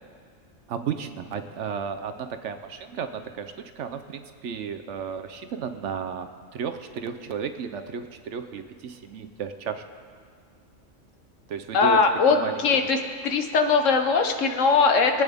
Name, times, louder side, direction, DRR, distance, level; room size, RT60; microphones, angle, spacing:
voice 1, 0.7-9.9 11.5-12.0 12.3-12.6, right 7 dB, 65° right, 9 dB, 0.9 m, -33 dB
voice 2, 11.7-13.0 13.2-15.2, left 4 dB, 70° left, 5 dB, 1.2 m, -20 dB
22.5 x 9.0 x 3.5 m, 2.1 s
omnidirectional pair, 1.4 m